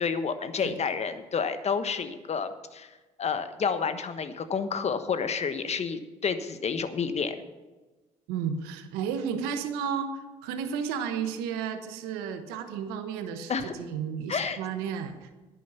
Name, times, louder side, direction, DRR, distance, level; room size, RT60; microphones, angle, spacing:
voice 1, 0.0-2.9 3.2-7.4 13.5-13.7 14.3-14.6, left 6 dB, 40° left, 10 dB, 1.3 m, -30 dB
voice 2, 8.3-10.1 10.4-15.3, right 7 dB, 80° right, 8 dB, 1.2 m, -32 dB
10.5 x 9.2 x 7.0 m, 1.2 s
hypercardioid pair, 60°, 16 cm